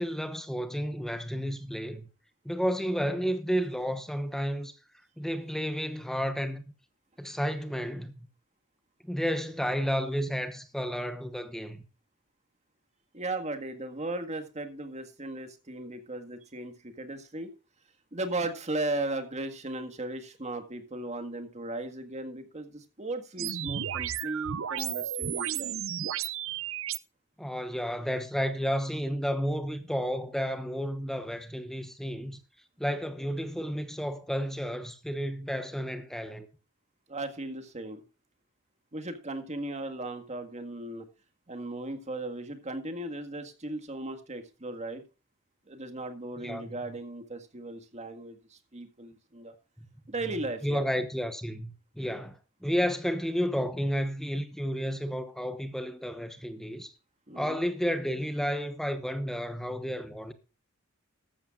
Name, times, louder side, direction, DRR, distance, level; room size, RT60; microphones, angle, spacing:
voice 1, 0.0-2.1 2.4-4.8 5.2-6.6 7.2-8.3 9.0-11.8 27.4-32.4 32.8-36.5 46.4-46.8 49.8-49.9 50.6-56.9 57.3-60.3, equal, ahead, 1.0 m, -31 dB
voice 2, 13.1-17.5 18.1-25.8 37.1-38.0 38.9-41.1 41.5-45.0 45.7-49.6 50.1-50.9 57.3-57.6, right 2 dB, 35° right, 1.8 m, -36 dB
sound 1, 23.4-27.0, right 9 dB, 70° right, 0.6 m, -33 dB
14.0 x 13.5 x 2.5 m
head